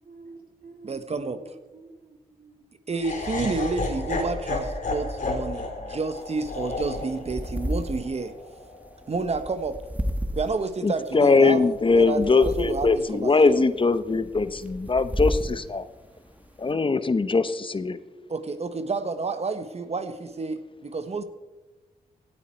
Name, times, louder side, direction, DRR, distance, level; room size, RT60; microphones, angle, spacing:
voice 1, 0.0-2.6, right 3 dB, 70° right, 2 dB, 2.9 m, -48 dB
voice 2, 0.9-1.4 2.9-8.3 9.1-9.8 10.3-11.6 12.0-13.7 18.3-21.3, right 4 dB, 45° right, 10 dB, 1.2 m, -30 dB
Laughter, 3.0-9.1, left 2 dB, 55° left, 3.3 m, -32 dB
sound 1, 6.2-16.7, equal, 10° right, 1.4 m, -34 dB
voice 3, 10.8-15.8 16.6-18.0, left 4 dB, 35° left, 13 dB, 0.9 m, -21 dB
17.0 x 9.0 x 4.5 m, 1.2 s
cardioid pair, 55°, 16 cm